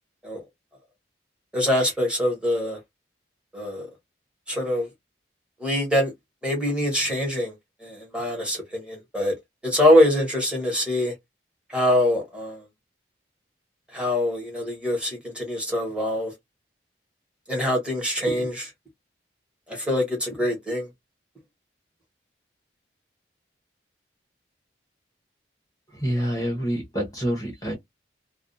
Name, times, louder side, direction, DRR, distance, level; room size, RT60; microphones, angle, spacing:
voice 1, 1.5-2.8 3.5-3.9 4.5-4.9 5.6-6.1 6.4-7.5 7.8-9.3 9.6-11.1 11.7-12.6 13.9-16.3 17.5-18.7 19.7-20.9, left 1 dB, 5° right, 1.1 m, -24 dB
voice 2, 25.9-27.7, equal, 20° left, 0.9 m, -27 dB
2.4 x 2.4 x 2.5 m
head